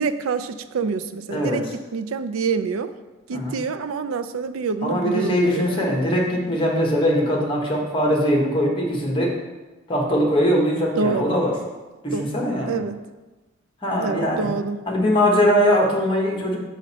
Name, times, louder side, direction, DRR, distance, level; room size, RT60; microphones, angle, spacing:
voice 1, 0.0-2.9 3.3-6.0 11.0-11.4 12.1-12.3 12.7-13.0 14.0-14.8, right 5 dB, 85° right, 10 dB, 0.4 m, -26 dB
voice 2, 4.8-9.3 9.9-11.5 12.0-12.8 13.8-14.5 14.9-16.6, equal, 25° left, -1 dB, 1.3 m, -21 dB
6.4 x 5.0 x 4.3 m, 1.2 s
head